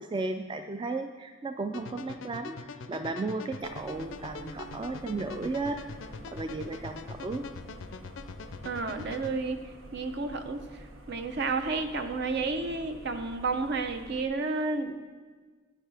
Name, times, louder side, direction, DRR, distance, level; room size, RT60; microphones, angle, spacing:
voice 1, 0.0-5.8 6.3-7.5, right 3 dB, 25° right, 7 dB, 0.3 m, -34 dB
sound 1, 1.7-9.4, left 4 dB, 75° left, 0.4 m, -43 dB
sound 2, 2.0-14.0, right 3 dB, 40° right, 1.3 m, -55 dB
sound 3, 3.6-14.3, equal, 85° right, 1.0 m, -49 dB
voice 2, 8.6-9.6 9.9-10.6 11.1-14.9, right 3 dB, 60° right, 7 dB, 0.7 m, -31 dB
9.9 x 9.2 x 3.4 m, 1.4 s
head